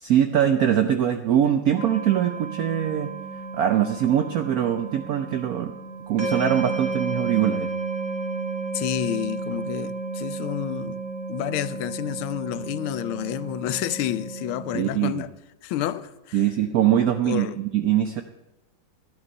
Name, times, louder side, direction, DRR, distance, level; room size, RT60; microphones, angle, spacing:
voice 1, 0.0-3.1 3.5-5.8 6.1-7.7 14.7-15.2 16.3-18.2, right 10 dB, 80° right, 0.8 m, -22 dB
sound 1, 1.8-14.9, right 3 dB, 45° right, 2.3 m, -32 dB
voice 2, 8.7-11.0 11.3-15.3 15.6-16.4 17.2-17.6, left 12 dB, 90° left, 1.5 m, -29 dB
12.5 x 11.0 x 5.4 m
omnidirectional pair, 2.3 m